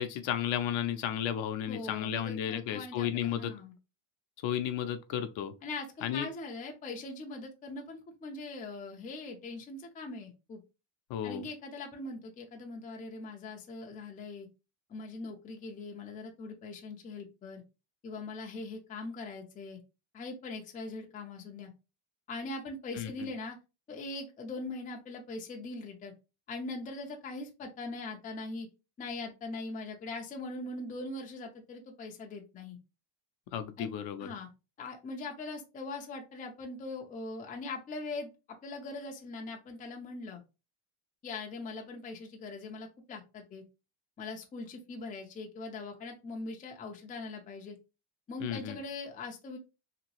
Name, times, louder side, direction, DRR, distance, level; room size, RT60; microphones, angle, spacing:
voice 1, 0.0-3.5 4.4-5.5 6.0-6.3 11.1-11.4 22.9-23.3 33.5-34.3 48.4-48.8, left 10 dB, 65° left, 0.6 m, -33 dB
voice 2, 1.7-3.7 5.6-10.6 11.2-14.5 14.9-17.6 18.0-19.8 20.1-21.7 22.3-23.6 23.9-26.1 26.5-28.7 29.0-32.8 33.8-33.9 34.2-34.5 34.8-38.3 38.6-40.4 41.2-43.6 44.2-47.8 48.3-49.6, left 3 dB, 20° left, 0.4 m, -41 dB
2.9 x 2.7 x 2.8 m
cardioid pair, 160°, 50 cm